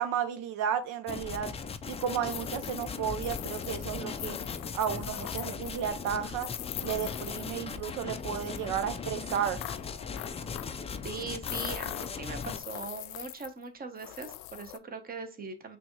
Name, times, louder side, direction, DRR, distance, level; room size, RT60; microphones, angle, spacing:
voice 1, 0.0-1.5 1.9-4.4 4.7-6.5 6.8-9.6, right 9 dB, 70° right, 0.6 m, -33 dB
sound 1, 1.1-12.6, left 5 dB, 20° left, 0.4 m, -38 dB
sound 2, 1.9-7.9 8.2-8.7 9.6-10.8 11.4-13.6 14.0-14.8, left 16 dB, 80° left, 0.5 m, -42 dB
voice 2, 11.0-15.8, right 4 dB, 25° right, 0.9 m, -40 dB
5.9 x 2.4 x 3.0 m
cardioid pair, 105°, 34 cm